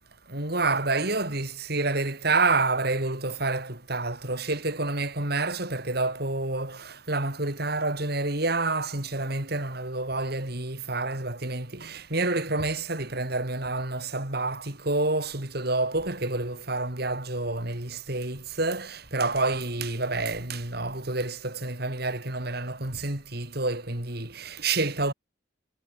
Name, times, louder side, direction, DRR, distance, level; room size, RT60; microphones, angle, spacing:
voice 1, 0.3-6.8 7.1-25.1, right 3 dB, 55° right, 4.2 m, -28 dB
head